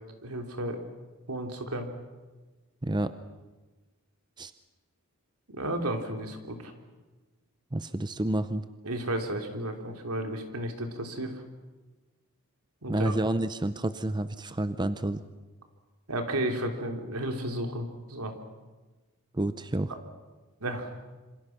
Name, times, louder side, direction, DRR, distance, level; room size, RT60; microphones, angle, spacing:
voice 1, 0.2-0.8 1.3-1.9 5.5-6.7 8.8-11.3 12.8-13.1 16.1-18.3 20.6-20.9, right 1 dB, 85° right, 4 dB, 3.2 m, -33 dB
voice 2, 2.8-3.1 4.4-4.5 7.7-8.7 12.9-15.2 19.3-19.9, right 1 dB, 20° right, 12 dB, 0.7 m, -29 dB
27.0 x 26.5 x 6.0 m, 1.2 s
head